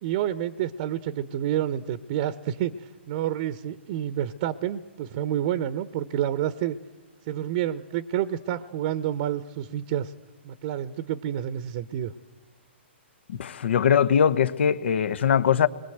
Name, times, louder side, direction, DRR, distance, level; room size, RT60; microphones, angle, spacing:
voice 1, 0.0-6.8 7.3-10.1 10.4-12.1, right 11 dB, 45° right, 0.9 m, -29 dB
voice 2, 13.3-15.7, left 8 dB, 65° left, 1.1 m, -21 dB
30.0 x 22.0 x 8.0 m
hypercardioid pair, 135°, 7 cm